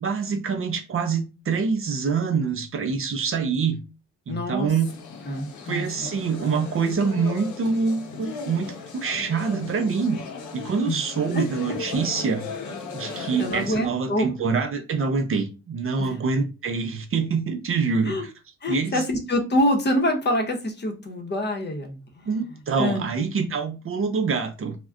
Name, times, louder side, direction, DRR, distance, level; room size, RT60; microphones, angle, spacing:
voice 1, 0.0-3.8 4.3-5.0 5.7-10.2 10.5-12.5 12.9-18.3 18.7-19.0 22.3-24.7, right 5 dB, 45° right, 0.6 m, -25 dB
voice 2, 4.3-4.7 5.3-6.1 10.8-11.0 11.3-11.4 11.7-11.8 13.4-14.3 16.0-16.2 18.1-18.2 18.6-22.4 22.8-23.0, left 1 dB, 35° left, 0.8 m, -26 dB
sound 1, 4.8-13.9, left 5 dB, 80° left, 0.7 m, -37 dB
2.2 x 2.1 x 3.6 m
cardioid pair, 80°, 29 cm